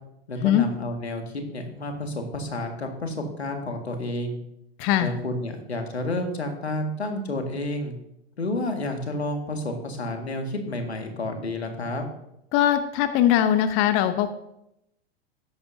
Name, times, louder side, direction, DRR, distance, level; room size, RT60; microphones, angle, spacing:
voice 1, 0.3-4.4 5.0-7.9 8.4-12.1, left 1 dB, 90° left, 4 dB, 1.9 m, -30 dB
voice 2, 4.8-5.1 12.5-14.3, left 11 dB, 40° left, 11 dB, 0.8 m, -21 dB
13.0 x 10.5 x 2.7 m, 0.82 s
hypercardioid pair, 100°, 32 cm